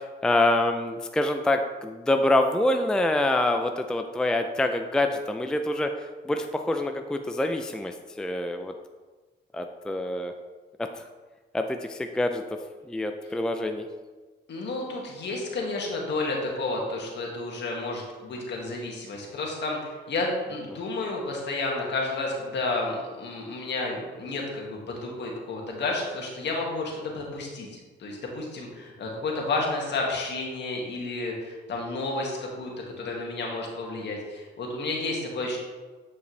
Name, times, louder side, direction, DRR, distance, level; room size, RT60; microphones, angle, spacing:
voice 1, 0.0-8.7 9.5-10.3 10.8-11.0 11.5-12.6 12.9-13.9 20.7-20.8, left 1 dB, 5° left, 6 dB, 0.4 m, -26 dB
voice 2, 14.5-19.8 20.1-27.7 28.0-32.7 33.0-35.6, left 2 dB, 60° left, -1 dB, 1.9 m, -31 dB
9.3 x 5.3 x 3.3 m, 1.3 s
cardioid pair, 90°, 20 cm